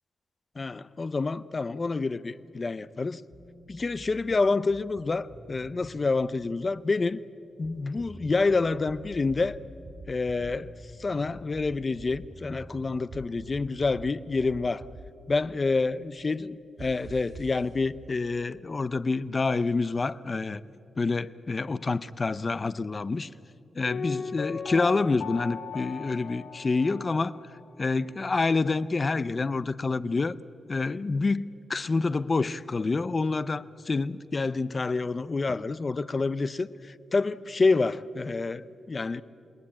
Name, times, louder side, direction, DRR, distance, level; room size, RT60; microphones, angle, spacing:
voice 1, 0.6-3.2 3.7-7.2 7.6-9.6 10.1-10.7 11.0-14.9 15.3-20.6 21.0-23.3 23.8-27.4 27.8-30.3 30.7-31.4 31.7-39.2, left 3 dB, 30° left, 0.5 m, -28 dB
sound 1, 3.3-5.9 7.6-11.3 12.3-14.0, equal, ahead, 3.6 m, -49 dB
sound 2, 8.9-9.5 9.9-10.5 11.3-12.2 13.1-14.1 14.4-15.0 16.8-17.6, right 3 dB, 50° right, 2.2 m, -44 dB
Piano, 23.9-27.6 27.9-28.0, left 5 dB, 70° left, 2.2 m, -37 dB
28.0 x 19.5 x 8.6 m
wide cardioid pair, 170°, 0 cm